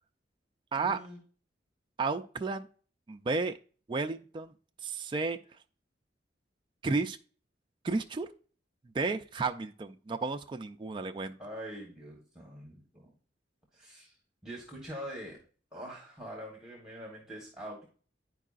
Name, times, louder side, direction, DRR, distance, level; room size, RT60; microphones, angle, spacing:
voice 1, 0.7-1.2 11.4-13.1 13.7-14.2 14.4-15.4 15.7-17.9, equal, 5° right, -2 dB, 1.2 m, -44 dB
voice 2, 2.0-2.7 3.1-3.5 3.9-4.5 4.8-5.4 6.8-7.2 7.8-8.3 8.9-11.4, right 4 dB, 25° right, 6 dB, 0.3 m, -32 dB
9.9 x 4.6 x 2.4 m, 0.41 s
head